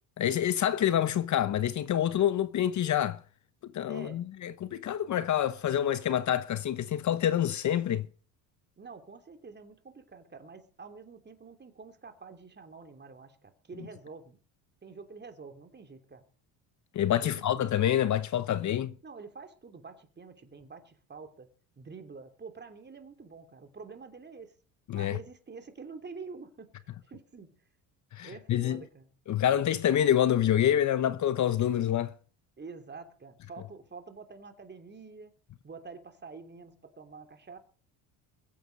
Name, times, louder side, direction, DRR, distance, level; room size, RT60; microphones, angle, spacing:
voice 1, 0.2-3.2 3.7-8.1 16.9-18.9 24.9-25.2 28.1-28.8 29.3-32.1, left 11 dB, 45° left, 0.9 m, -27 dB
voice 2, 3.9-4.2 8.8-14.4 14.8-16.3 17.2-17.6 19.0-21.5 21.8-24.5 24.9-27.6 28.2-29.1 32.6-35.3 35.6-37.6, right 4 dB, 25° right, 3.1 m, -47 dB
22.0 x 8.0 x 5.4 m
supercardioid pair, 90°, 39 cm